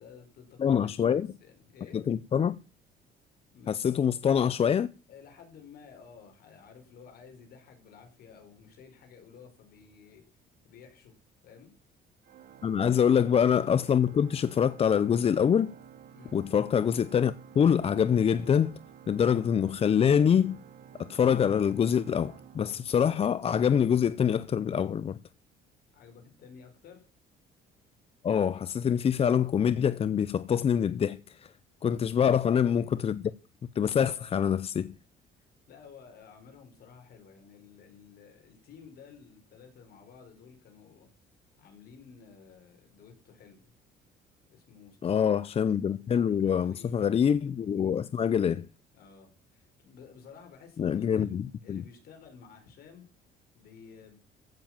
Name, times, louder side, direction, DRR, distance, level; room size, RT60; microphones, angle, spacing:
voice 1, 0.0-2.0 3.5-4.0 5.1-10.2 10.6-11.1 11.4-11.7 12.8-13.0 16.1-16.4 25.9-27.0 35.7-41.1 41.6-43.8 44.5-45.3 46.1-47.0 48.9-51.3 51.6-53.1 53.5-54.2, left 6 dB, 65° left, 5.4 m, -53 dB
voice 2, 0.6-1.3 1.9-2.6 3.7-4.9 12.6-15.7 16.3-18.8 19.1-20.6 21.0-25.2 28.2-31.5 31.8-33.3 33.8-35.0 45.0-48.7 50.8-51.8, left 8 dB, 35° left, 0.6 m, -25 dB
Organ, 12.2-23.4, right 9 dB, 60° right, 1.5 m, -52 dB
15.0 x 7.1 x 7.6 m
cardioid pair, 110°, 17 cm